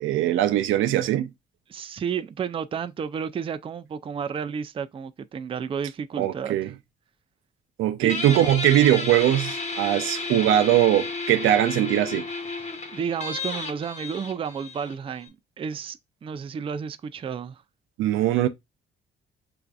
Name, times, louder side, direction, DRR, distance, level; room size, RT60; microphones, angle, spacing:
voice 1, 0.0-1.3 6.2-6.7 7.8-12.2 18.0-18.5, right 12 dB, 85° right, 0.5 m, -21 dB
voice 2, 1.7-6.7 8.0-8.1 12.9-17.6, right 7 dB, 25° right, 0.3 m, -32 dB
Guitar, 8.1-15.3, left 3 dB, 35° left, 1.1 m, -32 dB
5.7 x 2.5 x 2.3 m
cardioid pair, 90°, 20 cm